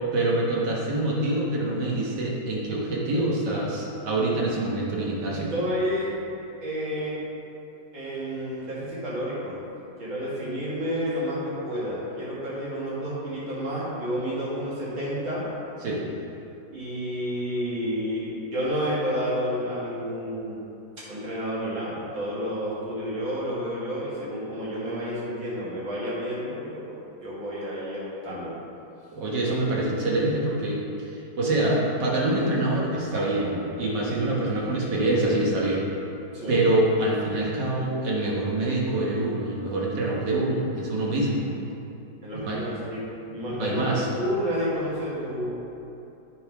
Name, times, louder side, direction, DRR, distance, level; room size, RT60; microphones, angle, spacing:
voice 1, 0.1-5.5 15.8-16.0 29.1-30.8 31.1-35.8 36.5-41.5 42.4-42.7 43.6-44.1, right 2 dB, 65° right, -4 dB, 1.9 m, -25 dB
voice 2, 5.2-6.1 6.6-7.2 7.9-9.6 10.0-15.4 16.7-20.6 21.0-26.9 27.2-28.6 36.3-36.6 42.2-45.5, equal, 85° right, -9 dB, 3.0 m, -30 dB
8.5 x 5.5 x 4.8 m, 2.8 s
omnidirectional pair, 2.0 m